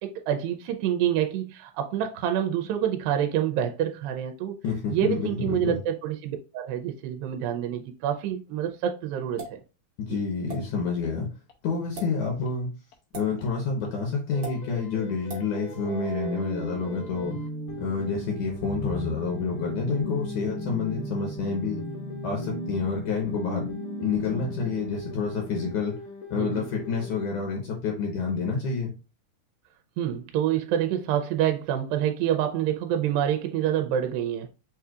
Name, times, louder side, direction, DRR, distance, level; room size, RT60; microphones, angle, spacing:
voice 1, 0.0-4.5 4.9-9.6 10.1-10.2 26.4-26.7 30.0-34.5, right 10 dB, 85° right, 2.3 m, -27 dB
voice 2, 4.6-5.8 10.0-11.3 11.6-12.7 13.1-17.4 17.8-21.8 22.2-23.7 24.0-26.0 26.3-28.9, left 5 dB, 70° left, 2.1 m, -28 dB
sound 1, 9.4-9.6 10.5-10.6 11.8-12.1 13.1-13.3 14.4-14.6 15.3-15.5, right 3 dB, 50° right, 1.7 m, -37 dB
sound 2, 11.0-11.1 11.5-11.6 12.0-12.1 12.5-12.6 12.9-13.0 13.4-13.5 13.9-14.0 14.3-27.4, left 3 dB, 85° left, 1.5 m, -43 dB
sound 3, 15.5-25.6, right 1 dB, 20° right, 0.8 m, -36 dB
6.1 x 2.7 x 2.4 m
omnidirectional pair, 4.1 m